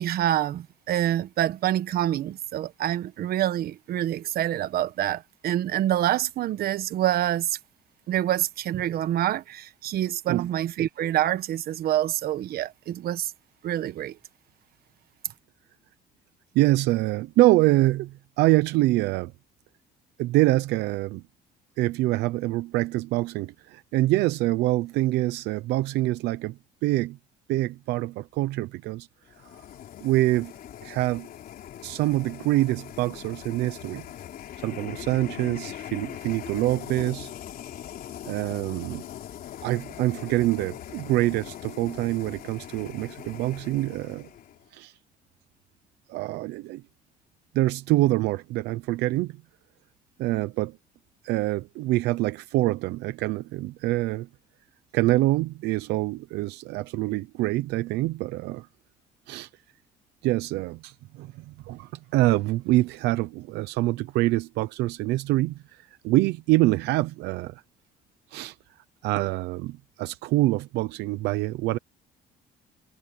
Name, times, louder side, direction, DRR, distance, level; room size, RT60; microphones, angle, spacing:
voice 1, 0.0-7.6 8.1-13.3 13.6-14.2, right 12 dB, 65° right, 1.3 m, -26 dB
voice 2, 16.5-19.3 20.2-21.2 21.8-27.2 27.5-29.1 30.0-30.5 30.8-31.3 31.8-34.0 34.6-37.3 38.2-39.0 39.6-44.3 44.7-44.9 46.1-46.8 47.5-49.3 50.2-50.8 51.2-54.3 54.9-58.7 59.3-59.5 60.2-67.6 68.3-68.6 69.0-71.8, right 17 dB, 85° right, 0.8 m, -25 dB
sound 1, 29.3-44.7, left 11 dB, 60° left, 3.5 m, -41 dB
cardioid pair, 110°, 17 cm